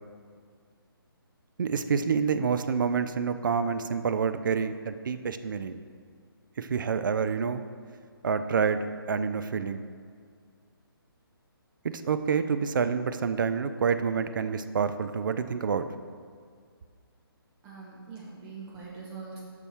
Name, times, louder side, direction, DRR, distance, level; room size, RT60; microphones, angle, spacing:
voice 1, 1.6-5.8 6.6-7.6 8.2-9.8 11.8-15.9, right 6 dB, 55° right, 10 dB, 0.4 m, -28 dB
voice 2, 17.6-19.4, right 4 dB, 20° right, -5 dB, 1.2 m, -43 dB
6.0 x 5.5 x 4.5 m, 2.1 s
figure-of-eight pair, 140°, 13 cm